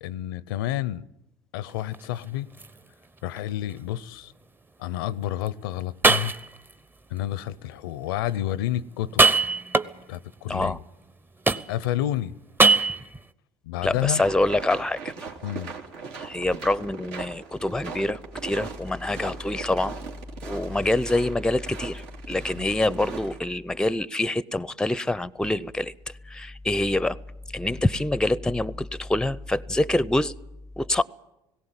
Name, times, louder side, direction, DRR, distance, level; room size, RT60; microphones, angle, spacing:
voice 1, 0.0-1.0 1.5-2.5 3.2-4.3 4.8-6.3 7.1-9.2 10.1-10.8 11.7-12.3 13.6-14.2 15.4-15.7 22.6-22.7, left 13 dB, 80° left, 0.6 m, -30 dB
sound 1, 1.7-2.1 2.6-2.7 3.4-3.5 5.5-5.6 6.0-6.7 9.0-10.2 11.5-12.0 12.6-13.2, right 3 dB, 20° right, 0.9 m, -21 dB
voice 2, 13.8-15.1 16.2-19.9 20.4-25.9 26.3-27.2 27.5-30.3 30.8-31.0, left 2 dB, 5° left, 0.6 m, -25 dB
sound 2, 14.1-23.4, right 5 dB, 75° right, 2.6 m, -39 dB
18.5 x 17.0 x 9.0 m
hypercardioid pair, 70°, 12 cm